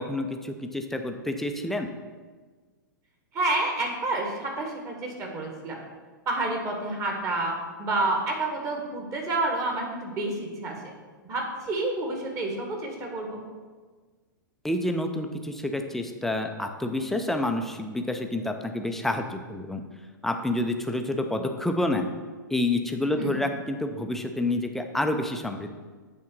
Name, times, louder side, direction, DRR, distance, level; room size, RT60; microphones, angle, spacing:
voice 1, 0.0-1.9 14.6-19.8 20.2-22.1 22.5-25.8, left 1 dB, 5° left, 4 dB, 0.5 m, -28 dB
voice 2, 3.3-5.8 6.2-10.9 11.2-13.4 23.2-23.3, right 2 dB, 25° right, 1 dB, 1.6 m, -29 dB
8.4 x 3.6 x 6.3 m, 1.4 s
figure-of-eight pair, 105°, 11 cm